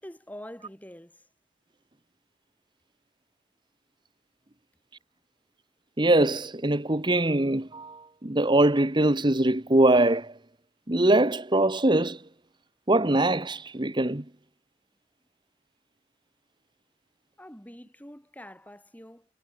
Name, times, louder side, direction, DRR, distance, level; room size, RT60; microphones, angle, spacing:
voice 1, 0.0-1.2 17.4-19.3, equal, 10° left, 6.7 m, -45 dB
voice 2, 6.0-10.3 10.9-12.2 12.9-14.2, right 1 dB, 25° right, 1.3 m, -22 dB
head